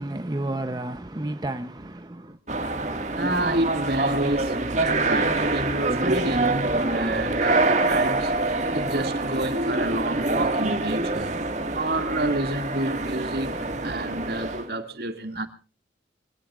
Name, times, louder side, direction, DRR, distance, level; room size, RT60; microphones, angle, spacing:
voice 1, 0.0-2.4, right 1 dB, 25° right, 0.7 m, -31 dB
sound 1, 2.5-14.7, right 2 dB, 40° right, 1.9 m, -25 dB
voice 2, 3.2-11.4 11.7-15.5, right 1 dB, 60° right, 2.3 m, -29 dB
24.5 x 18.0 x 2.5 m
head